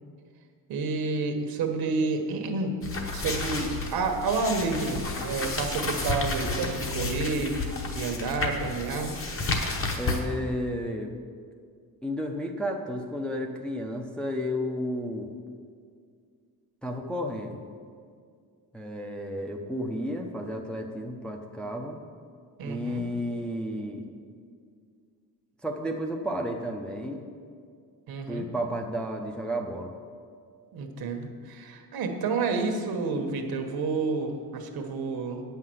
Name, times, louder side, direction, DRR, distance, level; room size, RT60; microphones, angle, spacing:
voice 1, 0.7-2.8 3.1-9.1 22.6-23.0 28.1-28.4 30.7-35.4, right 3 dB, 75° right, 4 dB, 1.2 m, -30 dB
sound 1, 2.8-10.2, left 3 dB, 35° left, 1.1 m, -31 dB
voice 2, 10.0-11.1 12.0-15.3 16.8-17.6 18.7-22.0 22.6-24.1 25.6-27.2 28.3-29.9, equal, 5° left, 1 dB, 0.5 m, -32 dB
9.1 x 5.8 x 7.7 m, 2.1 s
cardioid pair, 165°, 37 cm